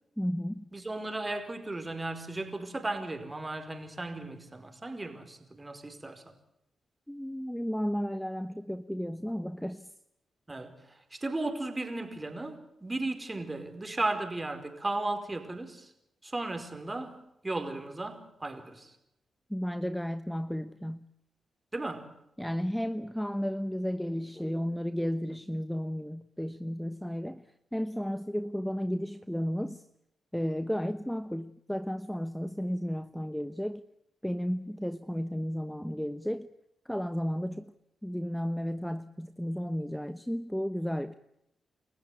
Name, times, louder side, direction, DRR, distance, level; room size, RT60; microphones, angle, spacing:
voice 1, 0.2-0.7 7.1-9.9 19.5-21.1 22.4-29.8 30.3-33.8 34.2-36.5 36.8-37.7 38.0-41.1, equal, 5° left, 1.0 m, -33 dB
voice 2, 0.7-6.3 10.5-15.9 16.2-19.0 21.7-22.1, right 2 dB, 25° right, 4.9 m, -35 dB
29.5 x 14.5 x 8.4 m
cardioid pair, 60°, 0 cm